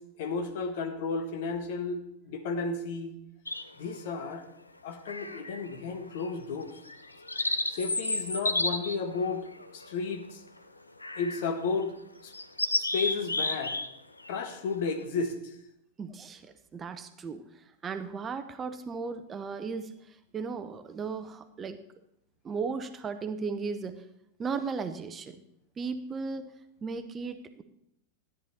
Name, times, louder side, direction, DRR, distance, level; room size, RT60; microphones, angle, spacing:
voice 1, 0.2-3.1 3.8-4.4 4.8-6.8 7.7-10.4 11.1-11.9 12.2-12.3 12.9-13.8 14.3-15.5, left 4 dB, 55° left, 7 dB, 1.5 m, -33 dB
sound 1, 3.5-4.0 5.1-5.7 6.1-6.3 6.9-10.3 11.0-11.5 11.8-11.9 12.3-13.9 14.2-14.4, left 2 dB, 85° left, 0.7 m, -32 dB
voice 2, 16.0-17.4 17.8-19.9 20.3-21.8 22.4-24.0 24.4-25.4 25.8-26.5 26.8-27.6, right 5 dB, 20° right, 10 dB, 0.8 m, -36 dB
14.0 x 9.9 x 4.2 m, 0.77 s
figure-of-eight pair, 90°, 0 cm